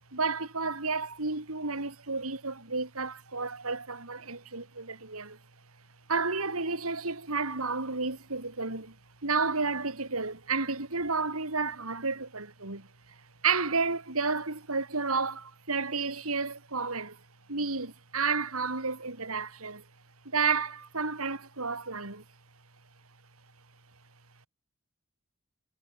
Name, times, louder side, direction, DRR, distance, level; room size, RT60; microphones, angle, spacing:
voice 1, 0.1-5.4 6.1-9.0 9.2-12.9 13.4-17.2 17.5-19.8 20.3-22.2, right 4 dB, 90° right, 3.9 m, -31 dB
head